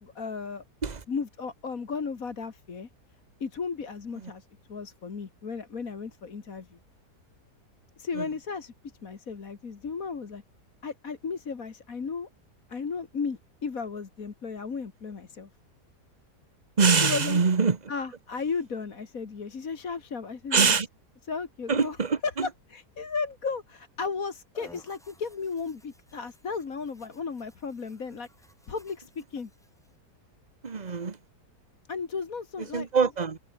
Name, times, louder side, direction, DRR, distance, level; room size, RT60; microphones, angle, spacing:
voice 1, 0.0-0.6 1.1-2.9 3.4-6.8 8.0-8.7 9.0-10.4 10.8-12.3 12.7-15.5 16.9-17.4 17.9-20.8 21.3-22.0 22.2-28.3 28.7-29.5 31.9-33.1, left 5 dB, 55° left, 2.4 m, -35 dB
voice 2, 16.8-17.8 20.5-20.9 21.7-22.5 30.6-31.2 32.7-33.4, right 5 dB, 30° right, 1.2 m, -24 dB
sound 1, 24.5-30.0, equal, ahead, 5.8 m, -57 dB
omnidirectional pair, 1.7 m